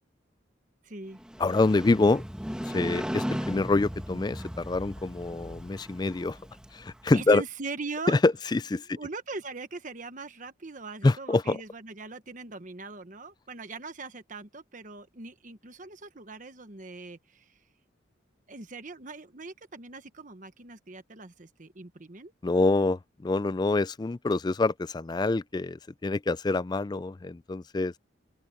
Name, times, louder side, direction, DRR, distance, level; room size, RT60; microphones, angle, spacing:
voice 1, 0.8-1.2 7.1-8.2 8.9-17.6 18.5-22.3, right 3 dB, 40° right, 1.2 m, -41 dB
Motorcycle, 1.2-7.1, equal, 5° right, 1.3 m, -37 dB
voice 2, 1.4-2.2 2.6-6.4 6.7-7.4 8.1-9.0 11.0-11.6 22.4-27.9, left 3 dB, 20° left, 0.3 m, -26 dB
open air
head